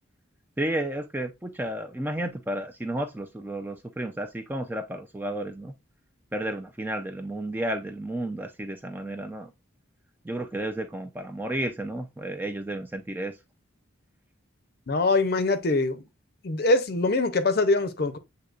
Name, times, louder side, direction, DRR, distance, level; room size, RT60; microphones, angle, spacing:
voice 1, 0.6-5.7 6.3-9.5 10.2-13.4, right 1 dB, 10° right, 0.3 m, -32 dB
voice 2, 14.9-16.0 16.4-18.2, left 2 dB, 50° left, 0.5 m, -23 dB
7.8 x 2.8 x 2.3 m
head